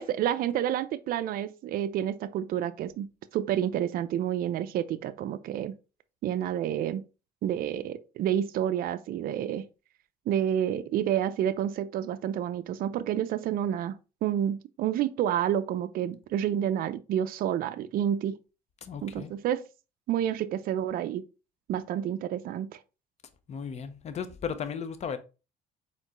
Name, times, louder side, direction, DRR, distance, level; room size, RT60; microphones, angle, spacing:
voice 1, 0.0-5.7 6.2-7.0 7.4-9.7 10.3-18.3 19.0-19.6 20.1-21.2 21.7-22.7, right 10 dB, 60° right, 0.4 m, -29 dB
voice 2, 18.8-19.3 23.5-25.2, left 7 dB, 40° left, 0.7 m, -35 dB
4.4 x 3.9 x 2.9 m
cardioid pair, 110°, 17 cm